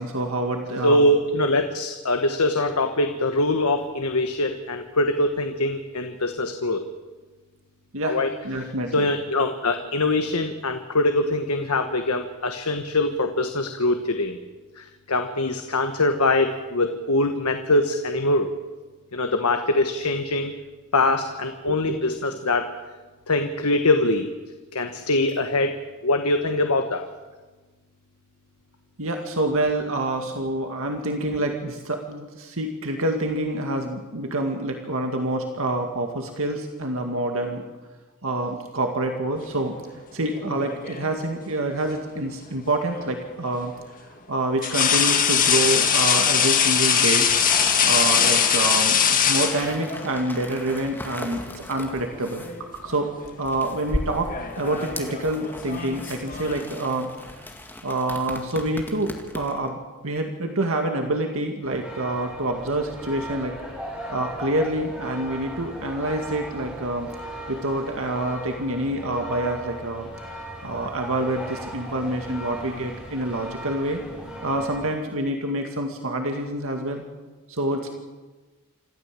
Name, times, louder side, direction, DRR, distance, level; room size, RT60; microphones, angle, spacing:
voice 1, 0.0-1.0 7.9-8.2 8.4-9.1 21.7-22.0 29.0-37.6 38.2-39.7 40.1-43.7 44.3-47.3 47.8-52.4 52.8-53.1 53.4-57.1 57.8-59.8 60.0-63.6 64.1-67.1 67.5-70.1 70.6-74.0 74.4-77.0 77.5-77.9, right 1 dB, 65° right, 3 dB, 2.1 m, -27 dB
voice 2, 0.8-6.8 8.0-14.4 14.8-18.5 19.1-20.5 20.9-22.7 23.3-24.3 24.7-25.8 26.0-27.0, left 2 dB, 80° left, 6 dB, 1.3 m, -23 dB
sound 1, 40.3-41.2 42.9-43.1 44.6-50.1 51.3-51.5 51.9-52.6 52.9-53.3 54.1-56.7, left 7 dB, 40° left, 2.0 m, -22 dB
sound 2, 47.3-59.7, left 1 dB, 10° left, 2.1 m, -37 dB
sound 3, 61.6-74.9, right 1 dB, 5° right, 7.4 m, -38 dB
26.5 x 14.0 x 7.7 m, 1.3 s
head